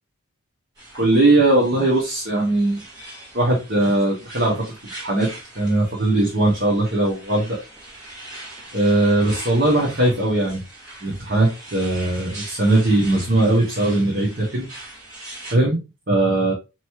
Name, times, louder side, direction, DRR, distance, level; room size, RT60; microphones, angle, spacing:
sound 1, 0.8-15.5, right 2 dB, 20° right, 1.7 m, -41 dB
voice 1, 0.9-2.8 3.3-7.6 8.7-10.6 11.0-14.7 15.5-16.5, right 2 dB, 45° right, -4 dB, 1.0 m, -19 dB
4.4 x 3.1 x 3.0 m, 0.26 s
head